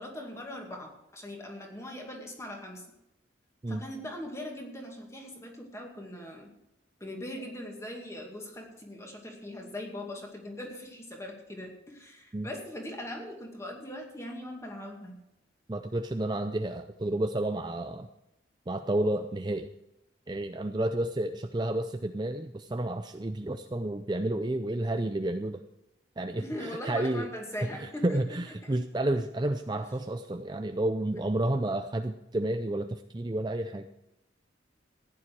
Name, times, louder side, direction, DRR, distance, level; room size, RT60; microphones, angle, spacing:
voice 1, 0.0-2.8 3.7-6.5 7.0-15.2 26.4-28.2, left 1 dB, 15° left, 1 dB, 2.3 m, -40 dB
voice 2, 15.7-18.1 18.7-19.7 20.3-25.6 26.2-27.3 27.8-33.9, right 1 dB, 20° right, 7 dB, 0.5 m, -31 dB
15.5 x 10.0 x 4.7 m, 0.89 s
head